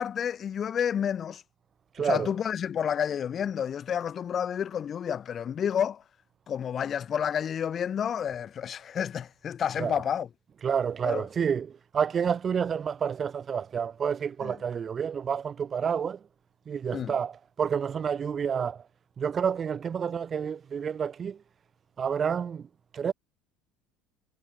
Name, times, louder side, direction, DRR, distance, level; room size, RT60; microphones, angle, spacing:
voice 1, 0.0-1.4 2.0-6.0 6.5-10.3 11.0-11.2 14.4-14.6 16.9-17.1, left 8 dB, 25° left, 2.1 m, -30 dB
voice 2, 1.9-2.3 9.8-10.0 10.6-16.2 16.7-18.8 19.2-21.4 22.0-22.7 22.9-23.1, right 7 dB, 25° right, 2.7 m, -29 dB
cardioid pair, 170°, 0 cm